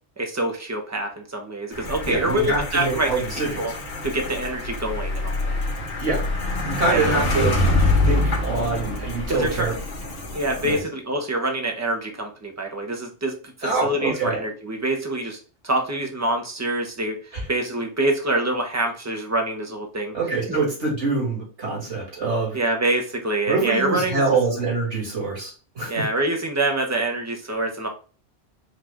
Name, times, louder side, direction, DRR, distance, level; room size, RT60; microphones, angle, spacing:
voice 1, 0.2-3.1 3.6-3.7 4.0-5.6 6.9-7.2 9.3-9.7 10.3-15.4 15.6-20.1 20.5-20.6 22.5-24.2 25.9-27.9, right 1 dB, 15° right, 3 dB, 0.7 m, -25 dB
sound 1, 1.7-10.8, left 2 dB, 75° left, 1.4 m, -25 dB
voice 2, 2.1-3.6 6.0-6.2 6.6-7.5 8.1-9.7 10.6-10.8 13.6-14.4 17.3-17.4 20.1-22.6 23.5-25.9, right 3 dB, 70° right, -3 dB, 2.5 m, -25 dB
4.9 x 2.4 x 3.5 m, 0.37 s
omnidirectional pair, 1.2 m